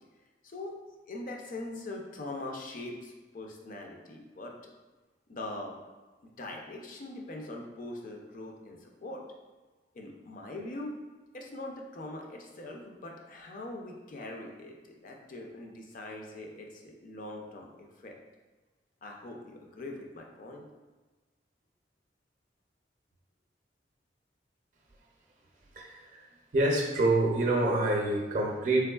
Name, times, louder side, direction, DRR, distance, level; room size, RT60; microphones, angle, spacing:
voice 1, 0.4-0.8 1.1-4.5 5.3-5.8 6.2-9.2 9.9-11.0 11.3-18.1 19.0-20.6, left 2 dB, 50° left, 1 dB, 0.4 m, -42 dB
voice 2, 25.7-26.2 26.5-28.9, right 2 dB, 45° right, -1 dB, 0.5 m, -26 dB
3.5 x 3.0 x 2.3 m, 1.2 s
head